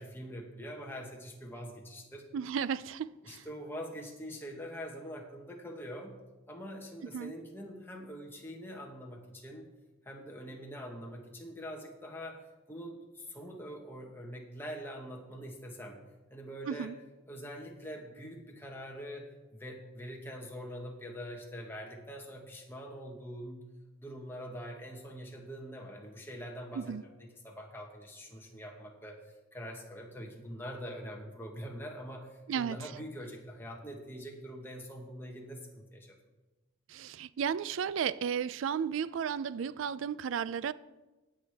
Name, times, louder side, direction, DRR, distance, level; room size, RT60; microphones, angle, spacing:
voice 1, 0.0-2.2 3.2-6.1 6.5-9.7 10.0-12.4 12.7-16.0 16.3-16.9 17.3-23.6 24.0-29.2 29.5-36.2, equal, 10° left, 1.2 m, -44 dB
voice 2, 2.3-3.4 7.1-7.3 16.7-17.0 26.7-27.0 32.5-32.9 36.9-40.7, right 7 dB, 75° right, 0.3 m, -34 dB
19.0 x 6.4 x 3.5 m
head